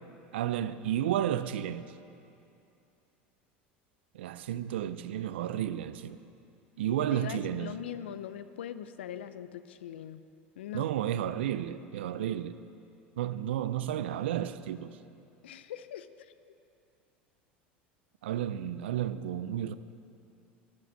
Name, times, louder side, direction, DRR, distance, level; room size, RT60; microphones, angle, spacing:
voice 1, 0.3-1.9 4.1-6.2 6.8-7.7 10.7-12.5 13.2-15.0 18.2-19.8, right 11 dB, 85° right, 0.4 m, -32 dB
voice 2, 6.8-10.2 10.6-10.9 15.4-16.1 16.4-16.5, left 10 dB, 90° left, 0.4 m, -41 dB
13.0 x 5.8 x 5.5 m
hypercardioid pair, 100°, 6 cm